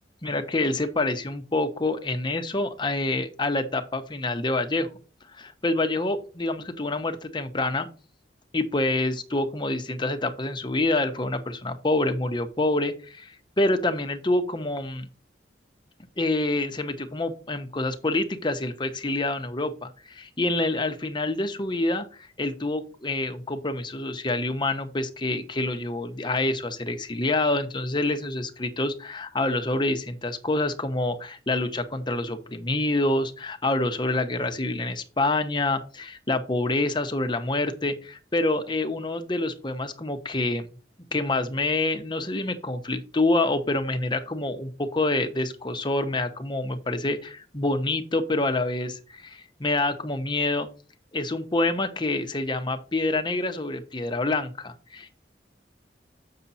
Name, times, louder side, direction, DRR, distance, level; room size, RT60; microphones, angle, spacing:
voice 1, 0.2-4.9 5.4-7.9 8.5-15.1 16.2-40.7 41.1-50.7 51.1-55.2, left 2 dB, 25° left, 6 dB, 1.0 m, -27 dB
7.3 x 6.7 x 4.1 m, 0.36 s
head